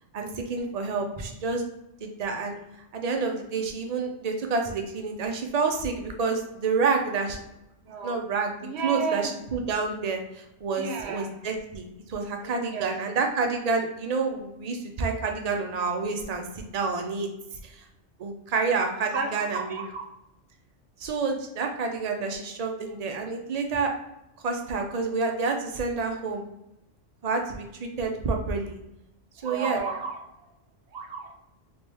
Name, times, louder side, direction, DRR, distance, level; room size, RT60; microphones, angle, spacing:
voice 1, 0.1-1.7 2.0-2.6 2.9-7.4 8.0-8.5 8.8-17.3 17.6-17.8 18.2-19.8 21.0-23.9 24.4-26.4 27.2-28.8 29.4-29.8, right 4 dB, 50° right, 3 dB, 0.5 m, -28 dB
voice 2, 7.8-8.2 8.6-9.4 10.8-11.3 12.4-12.9 19.0-20.0 29.4-30.2 30.9-31.3, right 5 dB, 65° right, 3 dB, 0.9 m, -33 dB
3.1 x 3.0 x 3.3 m, 0.87 s
omnidirectional pair, 1.2 m